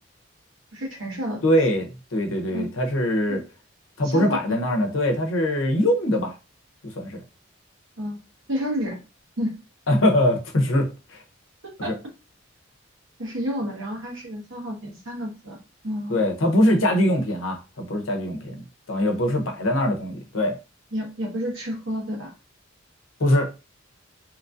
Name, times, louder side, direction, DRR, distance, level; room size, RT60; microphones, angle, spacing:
voice 1, 0.7-1.4 2.5-2.7 3.3-3.4 4.1-4.6 8.0-8.2 8.5-9.0 9.4-9.5 11.8-11.9 13.2-15.6 15.8-16.2 16.7-16.9 20.9-22.3, equal, 80° right, 1.2 m, -30 dB
voice 2, 1.4-3.4 4.0-6.3 6.8-7.2 9.9-11.2 11.9-12.0 16.1-18.6 18.9-20.6 23.2-23.5, left 1 dB, 85° left, 0.7 m, -22 dB
2.9 x 2.6 x 2.4 m
head